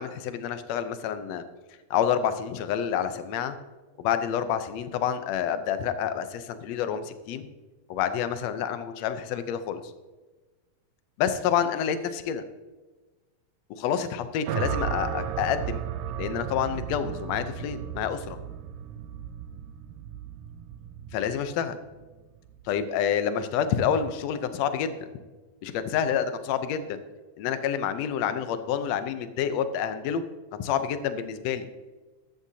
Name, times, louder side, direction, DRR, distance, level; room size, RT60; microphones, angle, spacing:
voice 1, 0.0-1.4 1.9-3.6 4.0-7.5 7.9-9.8 11.2-12.4 13.7-15.8 16.2-18.4 21.1-21.8 22.7-24.9 25.6-27.0 27.4-30.2 30.5-31.7, left 8 dB, 70° left, 10 dB, 1.7 m, -28 dB
sound 1, 14.4-22.7, right 9 dB, 75° right, 1.8 m, -35 dB
14.5 x 11.5 x 2.8 m, 1.2 s
omnidirectional pair, 3.6 m